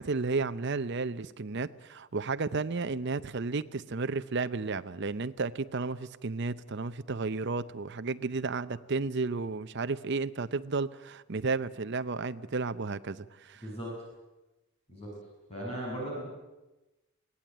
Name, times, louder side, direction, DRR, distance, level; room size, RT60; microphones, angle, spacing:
voice 1, 0.0-13.7, right 4 dB, 50° right, 0.6 m, -33 dB
voice 2, 13.6-13.9 14.9-15.1 15.5-16.2, right 1 dB, 25° left, 6.4 m, -37 dB
23.0 x 17.0 x 8.8 m
head